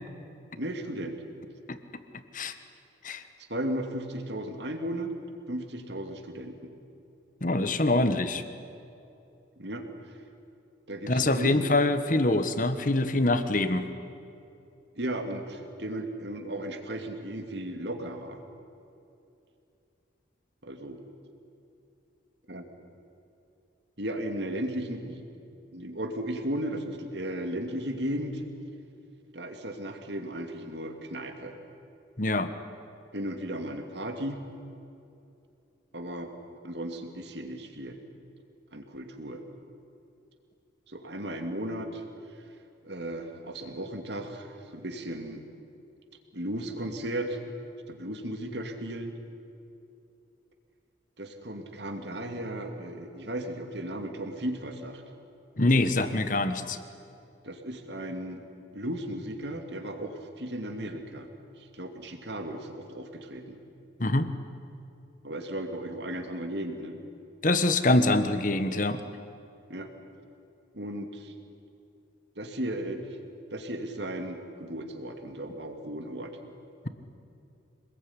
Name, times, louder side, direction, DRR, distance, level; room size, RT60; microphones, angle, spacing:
voice 1, 0.6-1.2 3.5-5.2 5.5-6.7 9.6-9.9 10.9-11.7 15.0-18.4 20.6-21.0 22.5-22.7 24.0-25.3 25.7-28.4 29.3-31.6 33.1-34.4 35.9-36.3 36.6-38.0 38.7-39.4 40.9-42.0 42.8-45.4 46.3-47.4 47.9-49.2 51.2-55.0 57.4-58.4 58.7-61.3 61.6-63.6 65.2-67.0 69.7-69.9 70.7-71.3 72.4-73.2 73.5-76.4, right 1 dB, 60° right, 5 dB, 2.7 m, -35 dB
voice 2, 7.4-8.4 11.1-13.9 32.2-32.5 55.6-56.8 64.0-64.3 67.4-69.0, left 2 dB, 40° left, 10 dB, 1.4 m, -24 dB
26.5 x 20.5 x 9.9 m, 2.7 s
head